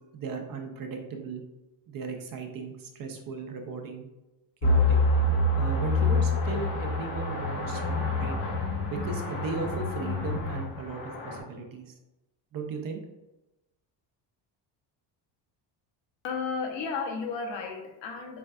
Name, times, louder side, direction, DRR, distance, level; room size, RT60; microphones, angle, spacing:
voice 1, 0.1-1.4 1.9-4.1 4.6-5.0 5.6-8.4 8.9-11.9 12.5-13.0, right 4 dB, 50° right, 4 dB, 0.7 m, -37 dB
sound 1, 4.6-11.4, left 2 dB, 90° left, 1.1 m, -27 dB
voice 2, 16.2-18.4, left 5 dB, 75° left, 3 dB, 0.9 m, -33 dB
6.9 x 2.3 x 2.4 m, 0.98 s
cardioid pair, 135°, 45 cm